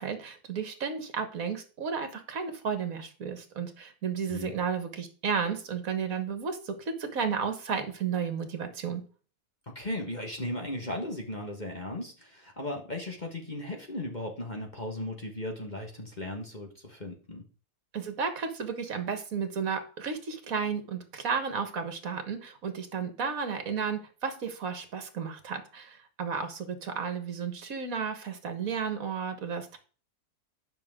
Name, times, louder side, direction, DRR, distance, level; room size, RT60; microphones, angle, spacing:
voice 1, 0.0-9.0 17.9-29.8, right 6 dB, 60° right, 8 dB, 1.9 m, -33 dB
voice 2, 9.7-17.4, left 1 dB, 30° left, 1 dB, 1.6 m, -36 dB
10.0 x 6.0 x 3.7 m, 0.38 s
omnidirectional pair, 1.6 m